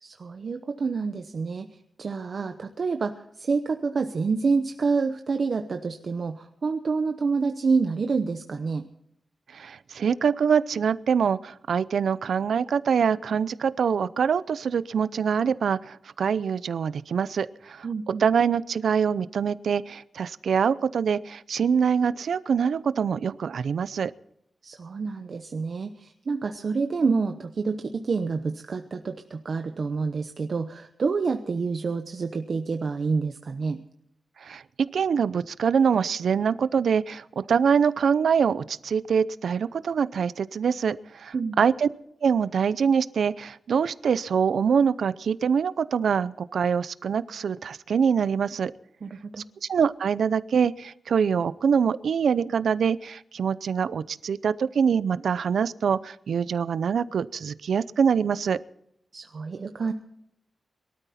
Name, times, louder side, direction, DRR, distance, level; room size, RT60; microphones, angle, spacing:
voice 1, 0.0-8.8 17.8-18.2 24.6-33.8 41.3-41.6 49.0-49.4 59.1-59.9, right 4 dB, 50° right, 6 dB, 0.8 m, -28 dB
voice 2, 9.5-24.1 34.4-34.6 34.9-41.9 42.2-48.7 49.6-58.6, right 6 dB, 90° right, 16 dB, 0.6 m, -24 dB
23.0 x 13.0 x 4.3 m, 0.75 s
wide cardioid pair, 175°, 0 cm